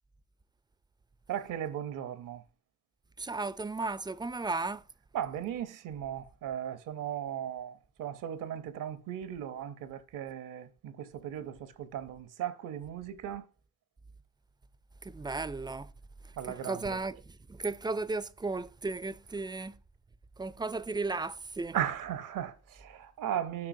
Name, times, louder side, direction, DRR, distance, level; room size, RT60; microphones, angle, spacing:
voice 1, 1.3-2.4 5.1-13.5 16.4-17.0 21.7-23.7, right 10 dB, 80° right, 0.8 m, -37 dB
voice 2, 3.2-4.8 15.0-15.9 16.2-19.8 20.4-21.8, right 3 dB, 15° right, 0.3 m, -35 dB
10.5 x 5.6 x 2.6 m
cardioid pair, 80°, 32 cm